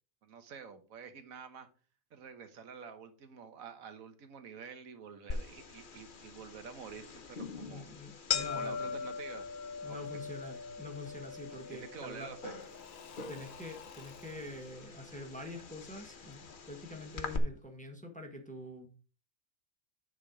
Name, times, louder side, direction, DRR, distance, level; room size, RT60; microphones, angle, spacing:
voice 1, 0.2-1.7 2.1-7.8 8.4-9.5 9.8-10.0 11.7-12.5, right 6 dB, 85° right, 8 dB, 1.5 m, -48 dB
sound 1, 5.3-17.4, left 5 dB, 45° left, 0.9 m, -41 dB
voice 2, 7.6-9.0 9.8-12.3 13.3-18.9, left 1 dB, 5° left, 4 dB, 1.1 m, -46 dB
Engine / Mechanisms / Drill, 11.0-17.7, left 7 dB, 75° left, 1.2 m, -57 dB
9.6 x 3.9 x 4.9 m, 0.37 s
omnidirectional pair, 1.4 m